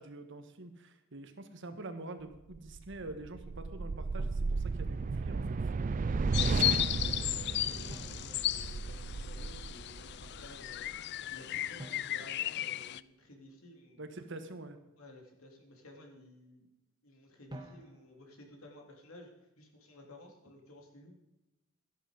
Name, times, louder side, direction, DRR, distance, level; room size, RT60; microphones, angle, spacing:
voice 1, 0.0-5.6 14.0-14.8, right 2 dB, 60° right, 8 dB, 1.4 m, -46 dB
Drum, 1.7-2.0 4.2-5.3 7.9-9.3 11.8-13.5 17.5-18.5, right 1 dB, 20° right, 1.6 m, -52 dB
sound 1, 2.5-11.0, right 4 dB, 35° right, 0.4 m, -34 dB
voice 2, 6.0-14.1 15.0-16.7 17.0-21.2, left 1 dB, 75° left, 2 dB, 3.1 m, -54 dB
sound 2, 6.3-13.0, left 13 dB, 50° left, 0.4 m, -35 dB
13.0 x 11.0 x 5.2 m, 0.95 s
head